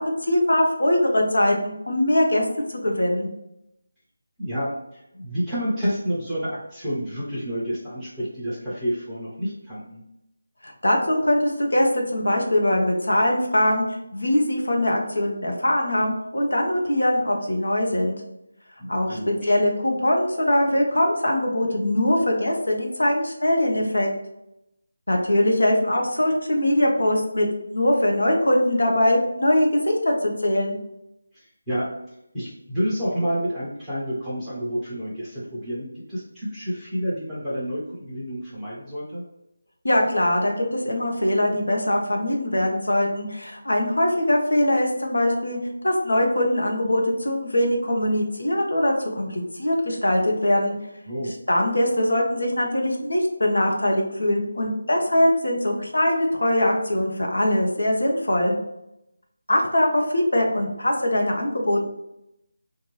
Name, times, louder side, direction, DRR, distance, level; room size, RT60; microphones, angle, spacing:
voice 1, 0.0-2.4 2.7-3.3 10.6-13.8 14.1-18.2 18.9-24.1 25.1-30.8 39.8-45.6 45.8-50.7 51.5-58.5 59.5-61.8, left 1 dB, 90° left, 0 dB, 1.0 m, -22 dB
voice 2, 4.4-10.0 18.8-19.5 31.3-31.9 32.3-39.2 51.1-51.3, equal, ahead, -15 dB, 1.0 m, -29 dB
4.0 x 2.5 x 3.1 m, 0.84 s
figure-of-eight pair, 175°, 0 cm